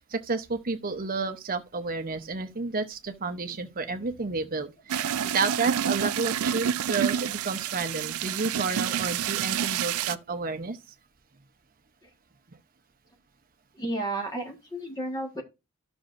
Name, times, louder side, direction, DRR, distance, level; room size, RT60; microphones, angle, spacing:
voice 1, 0.0-10.8, right 4 dB, 40° right, 0.8 m, -31 dB
sound 1, 4.9-10.1, right 9 dB, 70° right, 0.4 m, -28 dB
voice 2, 13.7-15.4, right 1 dB, 15° left, 1.5 m, -33 dB
12.5 x 6.1 x 2.6 m
head